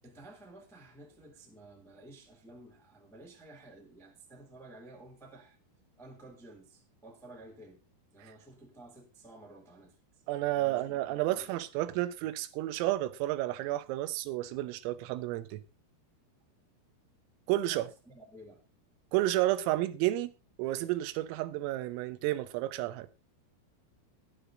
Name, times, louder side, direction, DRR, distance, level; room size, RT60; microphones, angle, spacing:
voice 1, 0.0-5.6 6.0-7.8 8.1-9.9 10.5-11.6 17.7-18.6, right 1 dB, ahead, 1.5 m, -53 dB
voice 2, 10.3-15.6 17.5-17.9 19.1-20.3 20.6-23.1, right 15 dB, 80° right, 3.5 m, -31 dB
12.0 x 11.5 x 3.8 m
omnidirectional pair, 6.0 m